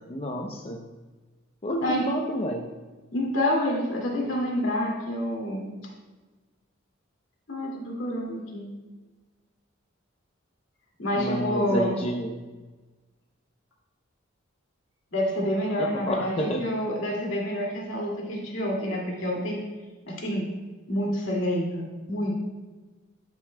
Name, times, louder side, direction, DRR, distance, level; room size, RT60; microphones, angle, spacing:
voice 1, 0.1-0.8 1.6-2.6 11.1-12.4 15.8-16.6, equal, 30° left, 1 dB, 0.6 m, -30 dB
voice 2, 3.1-5.8 7.5-8.7 11.0-12.0 15.1-19.6 20.1-20.5 20.9-22.3, equal, 65° left, -2 dB, 2.2 m, -28 dB
13.0 x 6.7 x 2.2 m, 1.2 s
head